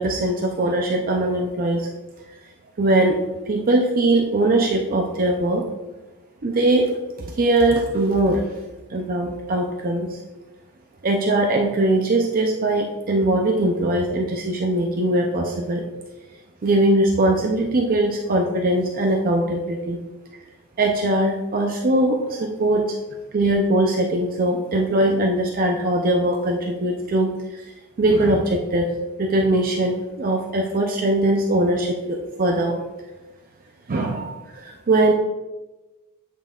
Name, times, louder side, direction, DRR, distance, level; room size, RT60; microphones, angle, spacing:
voice 1, 0.0-1.9 2.8-3.2 3.5-5.7 6.4-6.9 7.3-8.4 8.9-10.2 11.0-15.9 16.6-20.0 20.8-23.0 23.3-27.7 28.0-28.9 29.2-32.8 33.9-35.1, right 1 dB, 40° right, 1 dB, 0.5 m, -21 dB
8.7 x 5.4 x 2.4 m, 1.1 s
head